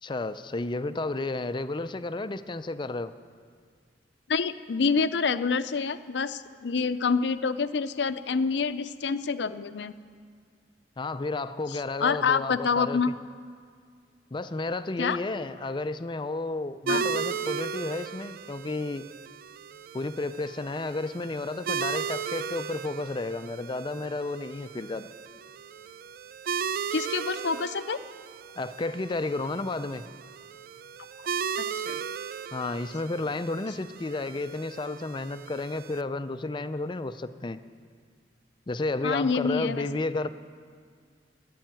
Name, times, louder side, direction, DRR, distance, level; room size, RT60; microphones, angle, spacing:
voice 1, 0.0-3.1 11.0-13.0 14.3-19.1 19.9-25.1 28.6-30.0 32.5-37.6 38.7-40.3, left 2 dB, 25° left, 12 dB, 0.5 m, -32 dB
voice 2, 4.3-9.9 11.7-13.1 15.0-15.2 16.9-17.1 26.9-28.0 31.6-32.0 39.0-39.9, left 5 dB, 75° left, 12 dB, 0.6 m, -27 dB
sound 1, 16.9-36.0, right 6 dB, 55° right, 0.3 m, -36 dB
13.5 x 8.5 x 9.2 m, 2.1 s
head